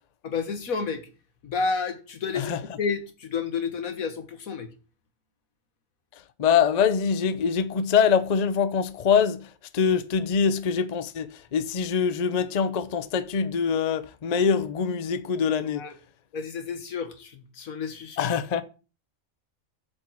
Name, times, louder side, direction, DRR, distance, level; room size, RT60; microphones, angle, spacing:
voice 1, 0.2-1.1 1.4-2.5 2.8-4.7 15.7-15.9 16.3-18.2, left 5 dB, 90° left, 1.8 m, -30 dB
voice 2, 6.4-15.9 18.2-18.6, left 6 dB, 40° left, 0.6 m, -24 dB
7.5 x 5.3 x 7.2 m
omnidirectional pair, 1.4 m